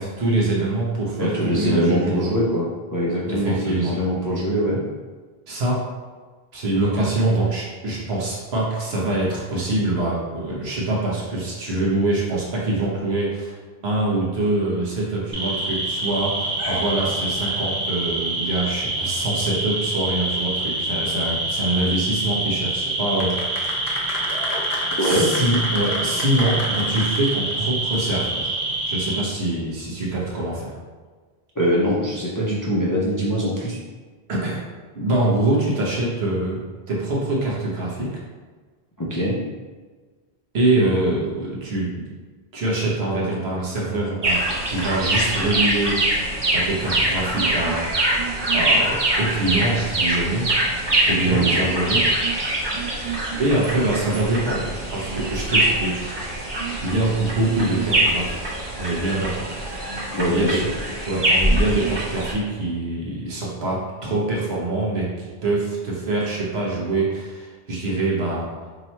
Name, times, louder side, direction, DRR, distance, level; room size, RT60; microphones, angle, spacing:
voice 1, 0.0-2.3 3.3-4.0 5.5-5.8 6.5-13.6 13.8-23.7 25.0-28.5 28.9-30.7 34.3-34.6 34.9-38.1 40.5-42.0 42.5-44.4 44.7-46.0 46.5-48.0 48.5-50.5 51.1-52.4 53.4-56.0 56.8-59.5 60.3-60.6 61.0-68.5, right 2 dB, 75° right, -5 dB, 1.3 m, -24 dB
voice 2, 1.2-4.8 25.0-25.3 31.6-33.8 39.0-39.4 51.2-51.4 60.1-60.7, equal, 25° left, -6 dB, 0.4 m, -23 dB
sound 1, 15.3-29.2, right 2 dB, 45° right, 1.5 m, -26 dB
sound 2, 23.1-27.7 27.9-28.0, left 2 dB, 70° left, 1.0 m, -31 dB
sound 3, 44.2-62.3, right 1 dB, 30° right, 0.7 m, -23 dB
3.0 x 2.9 x 4.3 m, 1.4 s
omnidirectional pair, 1.1 m